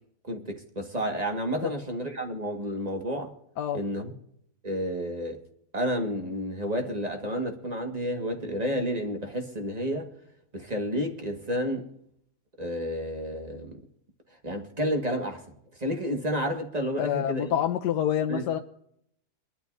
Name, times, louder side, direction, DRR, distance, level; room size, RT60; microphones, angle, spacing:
voice 1, 0.2-3.3 3.7-4.1 4.6-5.4 5.7-10.1 10.5-11.9 12.6-13.8 14.4-15.4 15.8-17.5 18.3-18.4, equal, 25° right, 1.7 m, -30 dB
voice 2, 17.0-18.6, left 10 dB, 85° left, 1.3 m, -27 dB
23.5 x 12.5 x 2.6 m
omnidirectional pair, 1.7 m